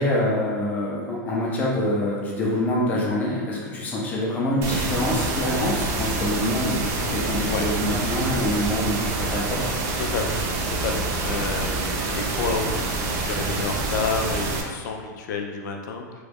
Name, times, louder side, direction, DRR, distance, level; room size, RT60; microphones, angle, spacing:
voice 1, 0.0-9.6, left 1 dB, 15° left, -4 dB, 0.6 m, -25 dB
sound 1, 4.6-14.6, right 3 dB, 30° right, 0.3 m, -27 dB
voice 2, 10.0-16.1, left 4 dB, 70° left, 3 dB, 0.5 m, -30 dB
3.1 x 2.3 x 3.4 m, 1.6 s
supercardioid pair, 165°, 10 cm